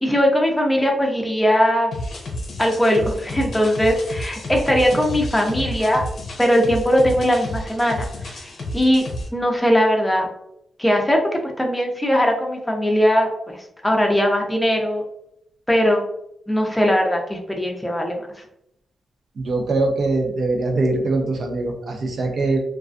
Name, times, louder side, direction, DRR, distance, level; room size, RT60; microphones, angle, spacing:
voice 1, 0.0-1.9 2.6-6.1 6.4-9.0 9.3-10.3 10.8-15.0 15.7-16.0 16.5-18.2, equal, 10° left, 1 dB, 0.5 m, -20 dB
sound 1, 1.9-9.3, left 1 dB, 65° left, 0.6 m, -31 dB
voice 2, 19.3-22.6, right 2 dB, 65° right, 2 dB, 0.6 m, -22 dB
2.3 x 2.2 x 2.5 m, 0.77 s
cardioid pair, 100°, 0 cm